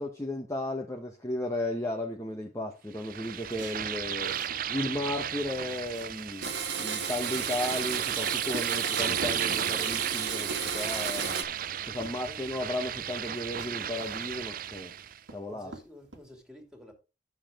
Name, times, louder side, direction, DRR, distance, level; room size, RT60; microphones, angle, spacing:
voice 1, 0.0-4.4 4.7-6.5 6.8-11.5 11.9-15.0 15.3-15.7, left 1 dB, 15° left, 1.0 m, -34 dB
sound 1, 2.9-15.2, right 9 dB, 50° right, 0.5 m, -34 dB
sound 2, 3.5-4.6 5.2-5.3 5.6-6.7 7.1-8.1 8.5-9.5 10.1-10.9 11.2-11.7 12.0-12.2 13.2-13.3 13.6-14.6 15.0-15.4 15.7-16.2, right 1 dB, 90° right, 2.4 m, -45 dB
Domestic sounds home sounds, 6.4-11.4, right 7 dB, 65° right, 1.4 m, -33 dB
voice 2, 12.1-12.4 15.5-16.9, left 1 dB, 5° right, 2.5 m, -51 dB
9.8 x 7.0 x 3.7 m
head